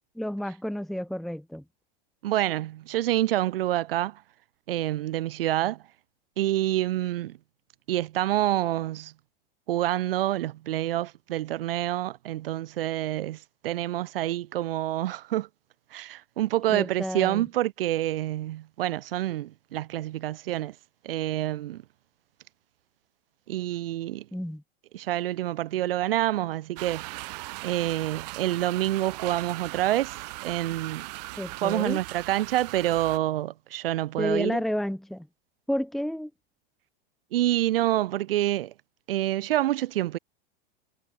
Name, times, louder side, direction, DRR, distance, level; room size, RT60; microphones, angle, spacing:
voice 1, 0.1-1.6 16.7-17.4 24.3-24.6 31.4-32.0 34.2-35.3 35.7-36.3, equal, ahead, 1.4 m, -30 dB
voice 2, 2.2-4.2 4.7-5.8 6.4-7.4 7.9-9.1 9.7-15.5 15.9-20.7 21.0-21.8 23.5-24.3 24.9-30.2 30.4-31.1 31.6-34.6 37.3-38.7 39.1-40.2, right 14 dB, 70° right, 7.3 m, -27 dB
sound 1, 26.8-33.2, right 25 dB, 45° right, 2.0 m, -39 dB
supercardioid pair, 170°, 29 cm